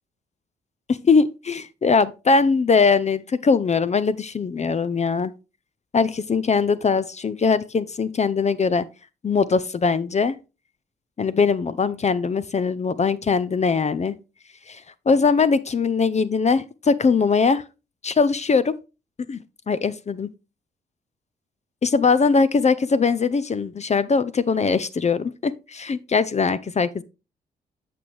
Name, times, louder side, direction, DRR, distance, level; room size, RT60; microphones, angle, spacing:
voice 1, 0.9-5.3 5.9-8.8 9.2-10.4 11.2-14.1 14.7-14.8 15.1-17.6 18.0-18.7 19.3-19.4 19.7-20.3 21.8-27.0, left 5 dB, 35° left, 0.6 m, -21 dB
8.4 x 6.0 x 3.3 m
hypercardioid pair, 45°, 20 cm